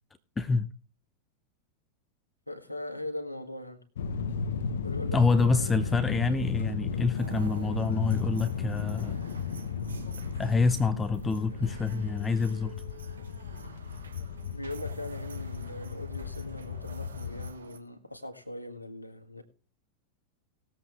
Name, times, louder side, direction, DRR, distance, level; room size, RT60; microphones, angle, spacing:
voice 1, 0.4-0.7 5.1-9.2 10.4-12.7, left 4 dB, 15° left, 0.6 m, -27 dB
voice 2, 2.5-3.8 4.8-6.0 14.5-19.4, left 1 dB, 85° left, 1.7 m, -40 dB
sound 1, 4.0-17.5, left 6 dB, 60° left, 1.0 m, -35 dB
sound 2, 7.2-17.8, right 6 dB, 70° right, 1.3 m, -50 dB
19.5 x 7.9 x 3.4 m
figure-of-eight pair, 90°, 0 cm